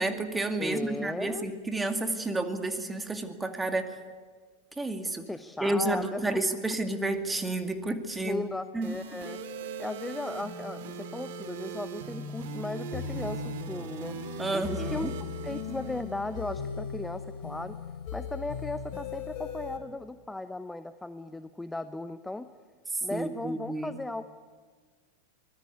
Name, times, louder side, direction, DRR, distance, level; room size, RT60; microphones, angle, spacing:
voice 1, 0.0-3.9 4.8-5.3 5.6-8.4 8.7-8.9 14.4-15.1 23.1-24.0, right 2 dB, 10° right, 6 dB, 2.3 m, -30 dB
voice 2, 0.6-1.5 5.3-6.4 8.2-9.4 9.8-14.2 14.5-15.1 15.4-17.8 18.1-22.5 23.0-24.2, left 2 dB, 5° left, 12 dB, 0.8 m, -37 dB
sound 1, 8.8-16.8, right 2 dB, 50° right, 3.1 m, -40 dB
sound 2, 12.9-19.8, left 6 dB, 45° left, 3.5 m, -38 dB
24.0 x 21.0 x 8.5 m, 1.5 s
figure-of-eight pair, 90°, 0 cm